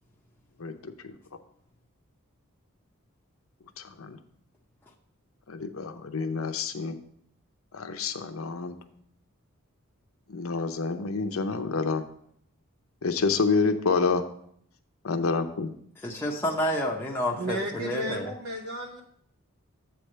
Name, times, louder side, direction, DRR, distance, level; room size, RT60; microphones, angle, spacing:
voice 1, 0.6-1.1 3.8-4.2 5.5-7.0 7.7-8.8 10.3-12.0 13.0-14.2 15.0-15.7, left 4 dB, 70° left, 7 dB, 0.7 m, -28 dB
voice 2, 16.0-18.3, left 1 dB, 10° left, -2 dB, 0.7 m, -29 dB
voice 3, 17.4-19.0, equal, 70° right, 1 dB, 0.8 m, -33 dB
8.0 x 3.4 x 6.4 m, 0.66 s
head